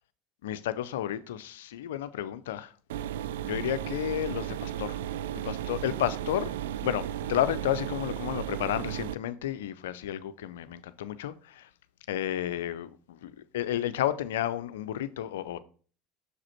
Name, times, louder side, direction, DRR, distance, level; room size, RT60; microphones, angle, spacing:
voice 1, 0.4-2.7 3.4-5.0 5.4-6.5 6.8-11.7 12.1-15.6, left 11 dB, 80° left, 0.4 m, -32 dB
sound 1, 2.9-9.1, right 11 dB, 80° right, 0.3 m, -34 dB
6.6 x 4.9 x 4.4 m
hypercardioid pair, 80°, 0 cm